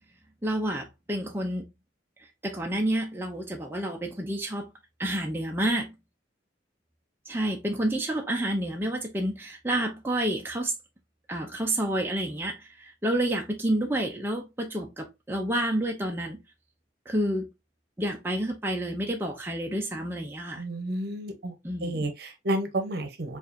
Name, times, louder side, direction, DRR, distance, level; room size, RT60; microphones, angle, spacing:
voice 1, 0.4-1.6 2.4-4.7 5.0-5.9 7.3-10.7 11.3-16.4 17.1-17.5 18.0-20.6 21.6-22.1, right 1 dB, 10° right, 0.5 m, -29 dB
voice 2, 20.6-21.5 21.8-23.4, right 1 dB, 60° right, 0.8 m, -31 dB
4.6 x 2.5 x 2.6 m
head